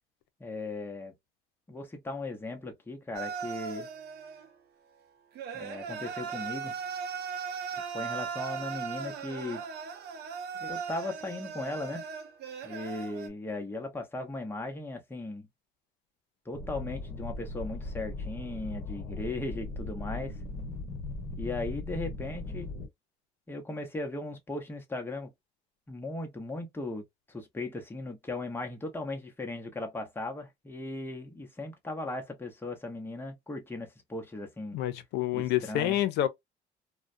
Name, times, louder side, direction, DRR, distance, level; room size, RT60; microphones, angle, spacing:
voice 1, 0.4-1.1 1.7-3.9 5.5-6.7 7.7-9.6 10.6-12.0 12.6-15.5 16.5-20.4 21.4-22.7 23.5-25.3 25.9-34.8 35.3-36.0, left 2 dB, 15° left, 0.8 m, -37 dB
sound 1, 3.1-4.5 5.4-13.3, right 6 dB, 70° right, 0.7 m, -38 dB
sound 2, 16.5-22.9, left 2 dB, 45° left, 1.1 m, -38 dB
voice 2, 34.7-36.3, left 13 dB, 85° left, 0.5 m, -28 dB
2.3 x 2.1 x 2.5 m
cardioid pair, 110°, 17 cm